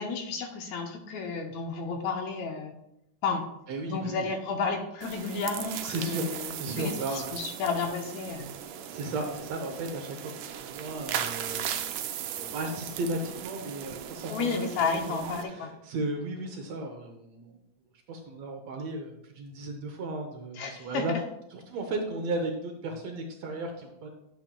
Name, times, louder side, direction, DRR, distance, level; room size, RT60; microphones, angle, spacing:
voice 1, 0.0-2.7 3.2-3.5 3.8-8.5 14.3-15.7 20.6-21.0, left 5 dB, 75° left, 3 dB, 1.9 m, -32 dB
voice 2, 3.7-4.3 5.8-6.3 6.5-7.4 8.9-14.7 15.1-17.6 18.1-21.1 21.5-24.1, right 2 dB, 70° right, 3 dB, 1.8 m, -35 dB
sound 1, 5.0-15.4, right 9 dB, 85° right, 2.2 m, -38 dB
10.5 x 7.8 x 2.2 m, 0.81 s
omnidirectional pair, 3.6 m